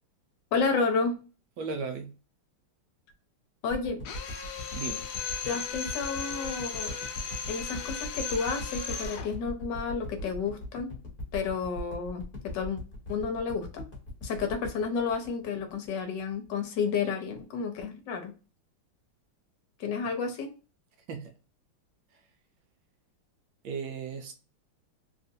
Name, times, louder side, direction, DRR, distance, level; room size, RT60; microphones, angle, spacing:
voice 1, 0.5-1.1 3.6-4.0 5.4-6.9 7.5-10.9 11.3-12.8 13.1-13.9 14.2-18.3 19.8-20.5, left 5 dB, 65° left, 1.3 m, -31 dB
voice 2, 1.6-2.1 4.7-5.1 21.1-21.3 22.1-22.2 23.6-24.3, right 5 dB, 75° right, 1.2 m, -36 dB
sound 1, 3.7-16.0 16.4-16.5, left 1 dB, 30° left, 1.1 m, -40 dB
Drill, 4.0-9.3, left 6 dB, 90° left, 0.8 m, -36 dB
3.5 x 2.5 x 2.6 m
omnidirectional pair, 2.4 m